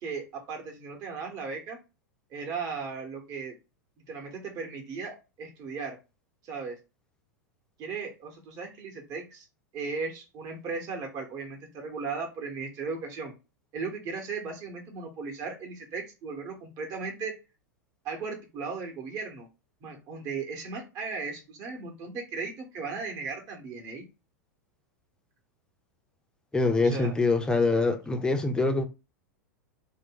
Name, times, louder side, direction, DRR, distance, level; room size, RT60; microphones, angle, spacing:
voice 1, 0.0-1.8 2.3-3.5 4.1-6.0 6.4-6.8 7.8-9.5 9.7-13.3 13.7-17.4 18.0-19.5 19.8-24.0 26.8-27.1, right 4 dB, 40° right, 1.0 m, -36 dB
voice 2, 26.5-28.9, left 3 dB, 10° left, 0.5 m, -24 dB
2.5 x 2.2 x 3.6 m
figure-of-eight pair, 95°, 10 cm